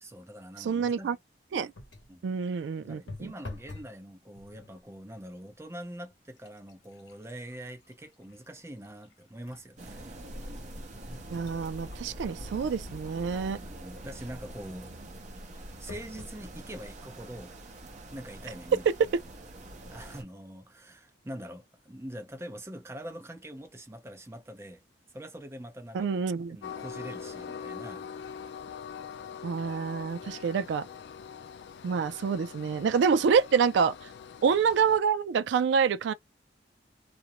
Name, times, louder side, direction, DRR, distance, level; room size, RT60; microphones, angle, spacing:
voice 1, 0.0-1.1 2.1-2.3 2.8-10.2 13.7-15.0 15.5-17.5 18.1-18.9 19.9-24.8 25.1-26.1 26.5-28.1, equal, 15° right, 0.6 m, -44 dB
voice 2, 0.6-1.2 1.5-1.7 2.2-3.3 11.3-13.6 25.9-26.6 29.4-30.9 31.8-33.9 34.4-36.1, right 6 dB, 75° right, 0.3 m, -27 dB
sound 1, 1.7-2.2 3.1-4.0 4.3-4.8 5.6-5.7 6.1-9.7 10.2-10.3 10.9-13.7 15.9-16.4 17.1-17.2 17.4-17.5, left 2 dB, 85° left, 0.9 m, -49 dB
sound 2, 9.8-20.2, right 1 dB, 40° right, 0.8 m, -44 dB
Train, 26.6-35.0, left 7 dB, 65° left, 0.3 m, -43 dB
2.5 x 2.1 x 2.9 m
head